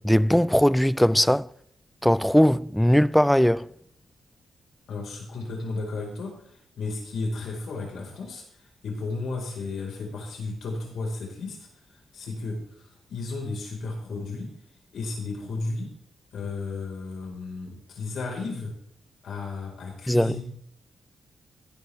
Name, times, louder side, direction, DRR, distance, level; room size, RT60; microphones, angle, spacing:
voice 1, 0.0-1.5 2.0-3.7 20.1-20.4, equal, 5° left, 0.4 m, -20 dB
voice 2, 4.9-11.7 12.1-14.5 14.9-15.9 16.3-18.7 19.2-20.4, left 3 dB, 80° left, 5.0 m, -34 dB
15.5 x 11.0 x 3.6 m
cardioid pair, 85°, 0 cm